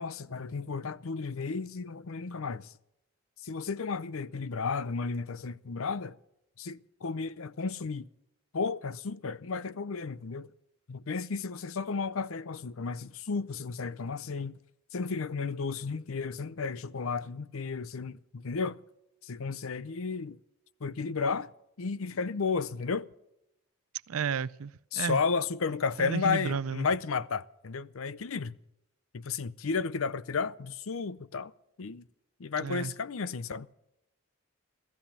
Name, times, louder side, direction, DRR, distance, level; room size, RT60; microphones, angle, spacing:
voice 1, 0.0-2.7 3.4-6.2 6.6-8.1 8.5-10.5 10.9-14.6 14.9-18.8 19.2-20.4 20.8-21.5 21.8-23.1 24.9-28.6 29.1-31.5 31.8-32.0 32.4-33.7, left 5 dB, 70° left, 0.6 m, -33 dB
voice 2, 24.1-25.2 26.0-26.9 32.6-32.9, right 6 dB, 80° right, 0.5 m, -32 dB
16.0 x 15.0 x 5.7 m
head